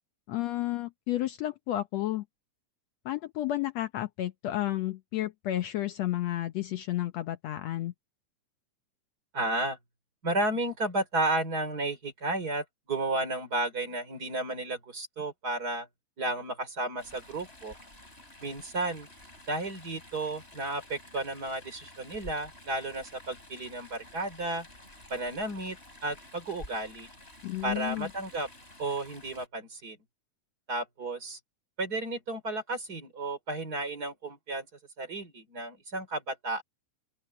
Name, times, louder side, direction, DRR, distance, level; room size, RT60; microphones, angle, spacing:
voice 1, 0.3-2.3 3.1-7.9 27.4-28.1, left 14 dB, 70° left, 1.9 m, -32 dB
voice 2, 9.3-9.8 10.2-15.9 16.2-17.7 18.4-19.1 19.5-24.7 25.1-27.1 27.6-28.5 28.8-30.0 30.7-31.4 31.8-34.7 35.0-36.6, right 2 dB, 30° right, 3.7 m, -33 dB
Chatter / Stream, 17.0-29.5, left 1 dB, 20° left, 6.7 m, -51 dB
open air
omnidirectional pair, 3.4 m